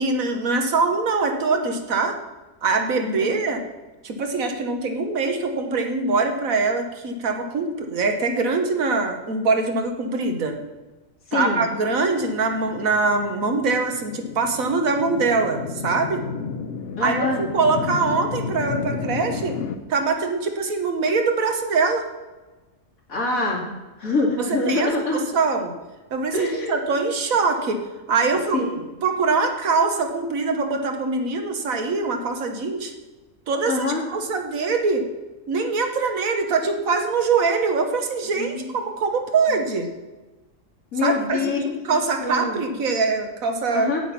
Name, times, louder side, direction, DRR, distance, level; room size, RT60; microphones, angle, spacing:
voice 1, 0.0-2.1 2.6-3.6 4.0-10.6 11.3-16.2 17.0-19.6 19.9-22.0 24.4-25.7 26.1-27.8 28.1-28.7 29.0-32.9 33.5-35.0 35.5-39.9 41.0-41.5 41.8-43.9, right 4 dB, 80° right, 5 dB, 1.6 m, -23 dB
voice 2, 11.3-11.6 17.0-17.4 23.1-23.6 24.0-25.2 26.3-26.8 28.5-28.8 33.7-34.0 38.4-38.8 40.9-42.6 43.7-44.0, left 3 dB, 85° left, -1 dB, 2.7 m, -25 dB
sound 1, 12.0-19.8, left 5 dB, 55° left, 0.8 m, -32 dB
8.6 x 8.3 x 5.9 m, 1.2 s
omnidirectional pair, 1.4 m